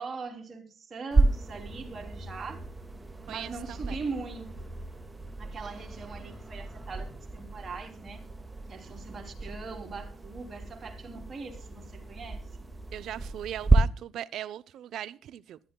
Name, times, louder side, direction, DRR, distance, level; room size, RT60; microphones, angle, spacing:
voice 1, 0.0-2.6 3.3-4.7 5.4-8.2 8.7-12.4, right 4 dB, 40° right, 3.4 m, -41 dB
sound 1, 1.1-13.8, right 3 dB, 15° right, 1.8 m, -32 dB
voice 2, 3.3-4.0 8.9-9.0 12.9-15.6, right 11 dB, 75° right, 0.6 m, -39 dB
21.0 x 11.5 x 2.2 m
cardioid pair, 90°, 0 cm